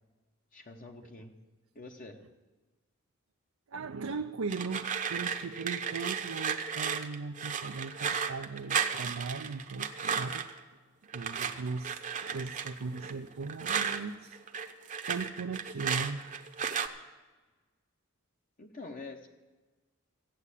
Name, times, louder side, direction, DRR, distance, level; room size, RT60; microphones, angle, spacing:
voice 1, 0.5-1.3 1.7-2.2 18.6-19.3, left 3 dB, 40° left, 3 dB, 0.9 m, -46 dB
voice 2, 3.7-10.4 11.1-14.4 15.1-16.2, right 4 dB, 90° right, 6 dB, 0.5 m, -38 dB
sound 1, 4.5-10.6 11.1-14.0 14.3-16.9, right 6 dB, 40° right, 0.8 m, -34 dB
14.0 x 8.5 x 8.3 m, 1.3 s
head